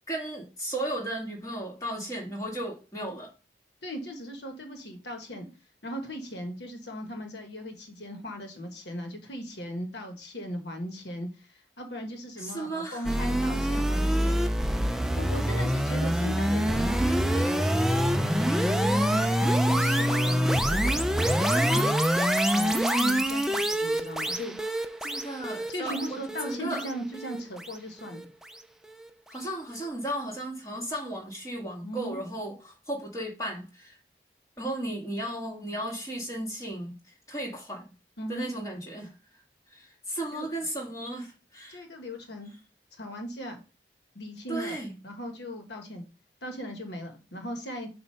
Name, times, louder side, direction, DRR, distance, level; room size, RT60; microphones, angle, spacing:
voice 1, 0.1-3.3 12.4-13.1 14.3-14.5 25.0-26.9 29.3-34.0 34.6-37.9 38.3-39.2 39.7-41.8 44.5-44.9, right 1 dB, 20° left, 2.0 m, -35 dB
voice 2, 3.8-5.5 5.8-14.4 15.2-21.1 21.5-21.9 22.3-24.6 25.7-28.3 31.8-32.2 38.2-38.5 40.3-40.5 41.7-42.5 43.0-43.6 44.1-46.0 46.4-47.9, equal, 75° left, 1.3 m, -38 dB
sound 1, 13.0-28.2, equal, ahead, 0.4 m, -25 dB
7.4 x 2.6 x 5.6 m
head